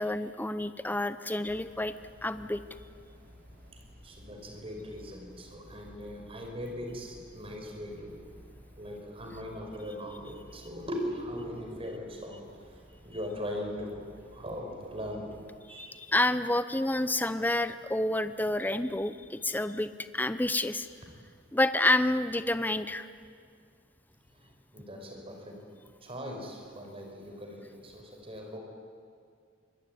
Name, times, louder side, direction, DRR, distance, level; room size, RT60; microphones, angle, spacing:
voice 1, 0.0-1.9 2.2-2.6 15.7-20.9 21.5-23.1, left 1 dB, 10° left, 12 dB, 0.6 m, -29 dB
sound 1, 1.4-15.6, equal, 45° right, 4.2 m, -55 dB
voice 2, 3.7-8.2 8.7-15.3 15.7-16.0 24.3-25.6 26.0-28.6, equal, 30° right, 2 dB, 5.1 m, -40 dB
24.5 x 21.0 x 9.4 m, 2.2 s
head